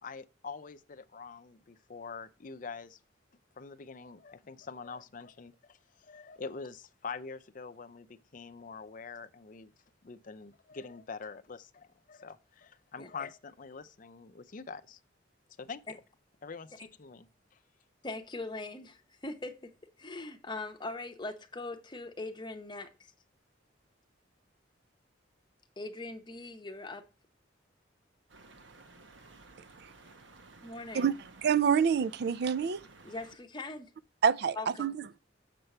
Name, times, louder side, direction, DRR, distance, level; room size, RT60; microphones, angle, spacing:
voice 1, 0.0-3.0 3.6-9.7 10.0-15.0 15.6-15.8 16.4-17.3, left 5 dB, 45° left, 0.5 m, -45 dB
voice 2, 18.0-19.7 20.0-23.1 25.8-27.0 30.6-31.1 33.0-33.9 34.6-34.9, left 2 dB, 25° left, 0.8 m, -41 dB
sound 1, 28.3-33.4, right 3 dB, 75° right, 1.1 m, -55 dB
voice 3, 31.4-32.8 34.2-35.2, right 7 dB, 55° right, 0.3 m, -27 dB
6.7 x 4.5 x 6.6 m
head